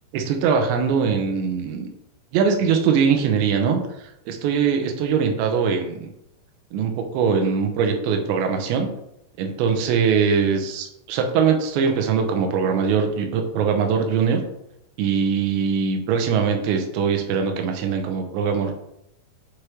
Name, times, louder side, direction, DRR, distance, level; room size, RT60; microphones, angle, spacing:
voice 1, 0.1-1.9 2.3-6.1 6.7-8.9 9.4-14.4 15.0-18.7, right 6 dB, 85° right, 4 dB, 3.2 m, -22 dB
8.1 x 4.9 x 3.1 m, 0.80 s
omnidirectional pair, 5.1 m